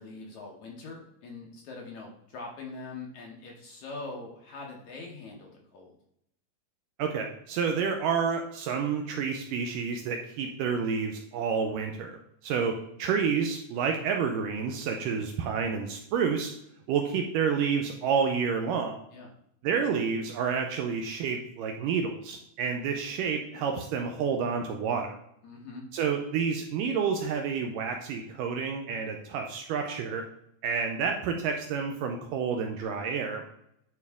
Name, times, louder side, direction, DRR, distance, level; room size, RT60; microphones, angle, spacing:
voice 1, 0.0-6.0 19.1-19.3 25.4-25.8, left 3 dB, 65° left, -1 dB, 2.0 m, -43 dB
voice 2, 7.0-16.5 16.9-19.0 19.6-25.2 25.9-30.2 30.6-33.4, right 6 dB, 80° right, 4 dB, 2.0 m, -29 dB
10.5 x 4.6 x 3.5 m, 0.75 s
omnidirectional pair, 4.3 m